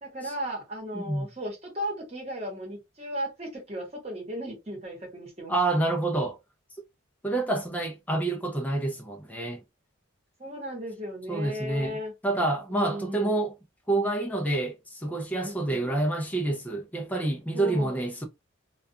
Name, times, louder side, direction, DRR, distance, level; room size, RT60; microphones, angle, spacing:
voice 1, 0.0-5.6 10.4-12.1 12.7-13.4 15.4-15.9 17.5-18.0, equal, 30° right, 1.1 m, -36 dB
voice 2, 0.9-1.3 5.5-6.4 7.2-9.6 11.3-13.5 13.9-18.2, right 2 dB, 5° left, 0.4 m, -28 dB
2.3 x 2.3 x 2.6 m
head